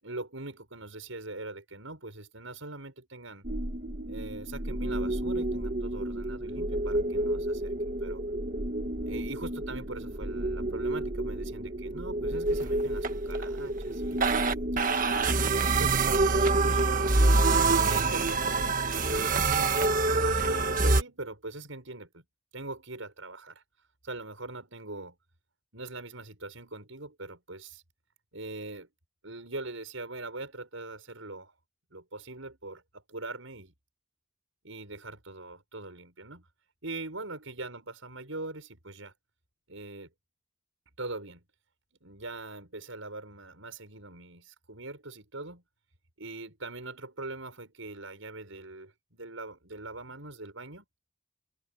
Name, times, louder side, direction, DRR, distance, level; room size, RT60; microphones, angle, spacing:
voice 1, 0.0-3.4 4.1-7.7 8.0-8.2 9.1-14.5 14.9-15.5 15.8-17.2 17.6-22.2 22.5-23.6 24.0-25.2 25.7-27.8 28.3-28.9 29.2-31.5 31.9-33.7 34.6-36.5 36.8-39.1 39.7-40.1 41.0-41.4 42.0-45.6 46.2-50.8, right 2 dB, 75° right, 6.2 m, -42 dB
sound 1, 3.4-21.0, right 3 dB, 40° right, 1.5 m, -27 dB
head